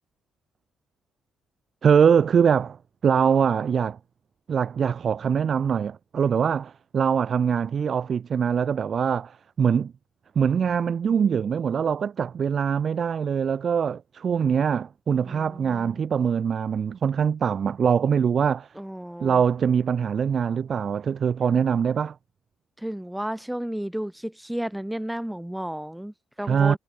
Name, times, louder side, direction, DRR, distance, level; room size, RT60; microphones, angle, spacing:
voice 1, 1.8-2.8 3.0-4.0 4.5-9.9 10.4-18.7 19.2-22.2 26.4-26.8, right 7 dB, 50° right, 1.0 m, -23 dB
voice 2, 15.2-16.0 18.8-19.4 22.8-26.8, right 1 dB, 5° right, 7.6 m, -33 dB
cardioid pair, 90°, 0 cm